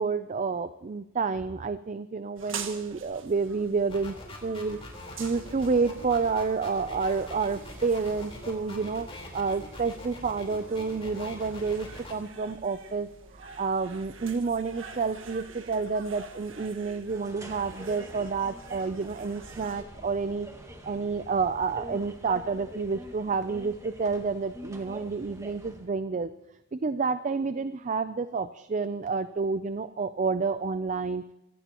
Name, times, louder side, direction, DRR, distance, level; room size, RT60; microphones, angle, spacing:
voice 1, 0.0-4.8 5.2-13.1 13.3-20.5 20.8-26.3 26.7-31.2, right 4 dB, 40° right, 12 dB, 0.5 m, -29 dB
sound 1, 2.4-19.8, right 5 dB, 70° right, 1.6 m, -46 dB
sound 2, 3.9-12.1, left 1 dB, 30° left, 4.2 m, -43 dB
sound 3, 17.1-25.9, equal, 15° right, 1.8 m, -45 dB
25.5 x 17.0 x 3.0 m, 0.90 s
head